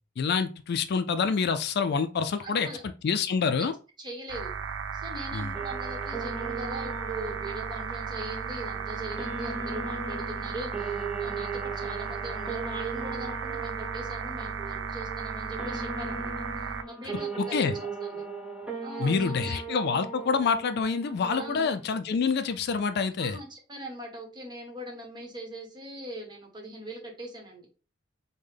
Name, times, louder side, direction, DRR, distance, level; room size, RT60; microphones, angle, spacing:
voice 1, 0.2-2.7 3.0-3.7 5.3-5.6 17.4-17.7 19.0-23.4, left 5 dB, 55° left, 0.4 m, -27 dB
voice 2, 2.4-2.8 3.6-3.7 4.0-4.5 4.9-18.2 18.8-19.6 21.4-21.6 23.2-27.7, right 1 dB, 25° right, 1.1 m, -41 dB
sound 1, 4.3-16.8, right 6 dB, 70° right, 0.4 m, -35 dB
sound 2, 5.5-21.9, right 4 dB, 5° right, 0.6 m, -38 dB
5.3 x 2.2 x 3.3 m
head